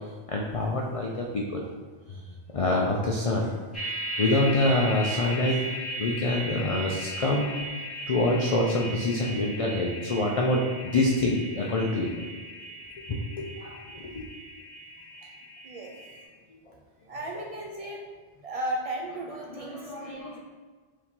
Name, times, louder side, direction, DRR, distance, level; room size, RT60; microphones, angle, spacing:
voice 1, 0.3-1.6 2.5-3.5 4.2-5.6 6.0-7.5 8.1-12.1 13.1-14.2 17.4-17.5 19.6-20.4, left 2 dB, 70° left, -1 dB, 0.3 m, -26 dB
sound 1, 3.7-16.2, right 1 dB, ahead, 1.1 m, -37 dB
voice 2, 17.1-18.0 18.4-20.4, right 1 dB, 65° right, -1 dB, 0.3 m, -35 dB
4.6 x 2.7 x 3.7 m, 1.4 s
omnidirectional pair, 1.1 m